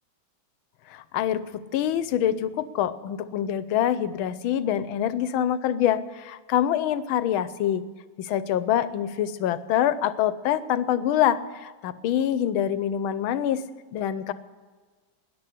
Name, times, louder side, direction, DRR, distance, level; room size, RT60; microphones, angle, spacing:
voice 1, 0.9-7.8 8.2-13.6 13.9-14.3, left 10 dB, 90° left, 14 dB, 1.5 m, -25 dB
13.0 x 10.0 x 10.0 m, 1.4 s
omnidirectional pair, 2.2 m